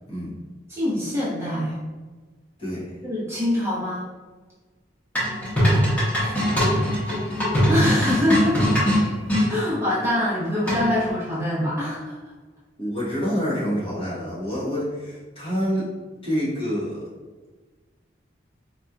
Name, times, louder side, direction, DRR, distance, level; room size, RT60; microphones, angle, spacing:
voice 1, 0.7-1.7 3.0-4.1 7.7-8.6 9.5-12.2, left 1 dB, 15° right, -8 dB, 0.8 m, -24 dB
voice 2, 2.6-2.9 6.2-6.8 12.8-15.9 16.2-17.0, equal, 30° left, -9 dB, 1.3 m, -27 dB
sound 1, 5.2-9.5 10.7-11.1, equal, 10° left, 1.2 m, -21 dB
4.3 x 2.9 x 2.4 m, 1.3 s
head